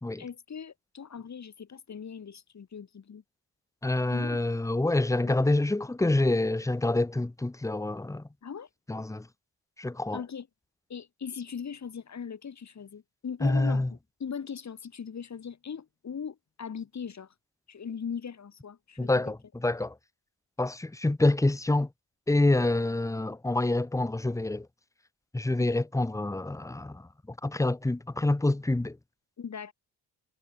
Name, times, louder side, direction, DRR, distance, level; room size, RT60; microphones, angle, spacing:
voice 1, 0.2-3.2 4.1-4.4 5.2-5.3 8.4-8.7 10.1-10.5 10.9-17.3 17.7-19.1 25.6-25.7 29.4-29.7, left 7 dB, 40° left, 7.4 m, -39 dB
voice 2, 3.8-8.3 8.9-9.3 9.8-10.2 13.4-13.9 19.0-19.9 20.6-21.9 22.3-24.7 25.3-27.1 27.4-29.0, left 2 dB, 5° left, 1.1 m, -27 dB
wide cardioid pair, 165°, 44 cm